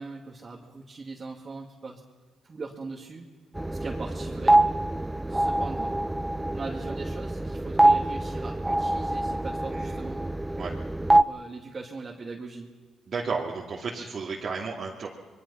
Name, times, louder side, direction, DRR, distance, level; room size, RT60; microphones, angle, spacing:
voice 1, 0.0-2.0 2.4-3.3 3.7-4.6 5.3-6.0 6.5-10.2 11.1-12.7, right 3 dB, 40° right, -2 dB, 2.5 m, -40 dB
sound 1, 3.6-11.2, right 1 dB, 10° right, 0.6 m, -25 dB
voice 2, 9.7-10.0 10.5-10.7 13.1-15.1, right 4 dB, 55° right, -3 dB, 2.6 m, -33 dB
26.0 x 22.0 x 5.8 m, 1.4 s
cardioid pair, 85°, 0 cm